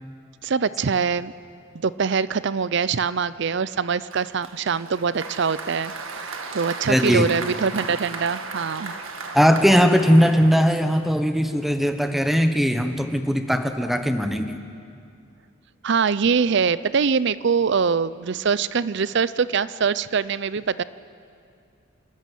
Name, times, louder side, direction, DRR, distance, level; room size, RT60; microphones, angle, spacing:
voice 1, 0.4-1.3 1.7-6.2 6.5-8.9 15.8-20.8, right 5 dB, 60° right, 17 dB, 0.5 m, -23 dB
Applause, 4.1-11.2, right 4 dB, 80° right, 1.7 m, -36 dB
voice 2, 6.9-7.3 9.3-14.6, equal, ahead, 7 dB, 1.1 m, -19 dB
27.5 x 14.0 x 9.3 m, 2.3 s
head